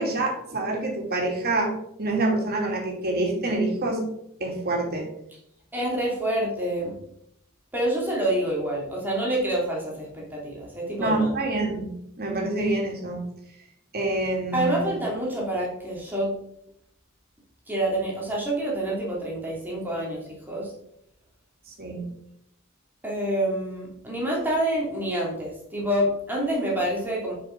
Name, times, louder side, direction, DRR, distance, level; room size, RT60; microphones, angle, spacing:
voice 1, 0.0-1.7 2.0-4.0 4.4-5.1 11.0-11.9 12.2-13.2 13.9-15.0 21.8-22.0, right 2 dB, 50° right, -1 dB, 2.9 m, -26 dB
voice 2, 5.7-6.9 7.7-11.3 14.5-16.3 17.7-20.7 23.0-27.3, right 1 dB, 10° right, -4 dB, 2.9 m, -27 dB
10.5 x 6.0 x 4.6 m, 0.76 s
head